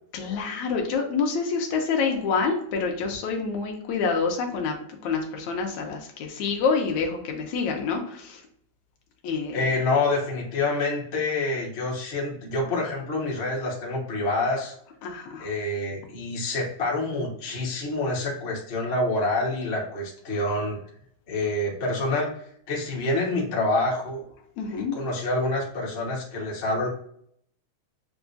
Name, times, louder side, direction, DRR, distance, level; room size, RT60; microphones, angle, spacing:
voice 1, 0.1-8.4 9.2-9.6 15.0-15.5 24.6-25.0, left 5 dB, 75° left, 2 dB, 2.1 m, -27 dB
voice 2, 9.5-14.7 15.4-20.8 21.3-24.2 24.7-26.9, left 2 dB, 60° left, -4 dB, 0.6 m, -27 dB
6.9 x 2.4 x 2.6 m, 0.67 s
omnidirectional pair, 3.4 m